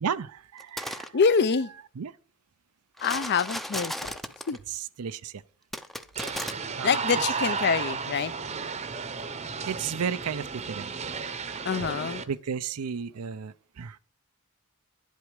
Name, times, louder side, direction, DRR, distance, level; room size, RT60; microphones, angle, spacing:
voice 1, 0.0-1.2 2.0-2.1 4.7-5.4 6.8-7.0 9.7-10.9 12.3-14.0, right 7 dB, 80° right, 0.5 m, -33 dB
sound 1, 0.6-1.1 3.0-4.6 5.7-6.5, equal, ahead, 0.5 m, -35 dB
voice 2, 1.1-1.7 3.0-4.1 4.5-4.6 6.8-8.3 11.6-12.2, left 5 dB, 50° left, 0.5 m, -25 dB
sound 2, 6.2-12.2, right 5 dB, 30° right, 0.8 m, -33 dB
10.5 x 8.2 x 4.7 m
head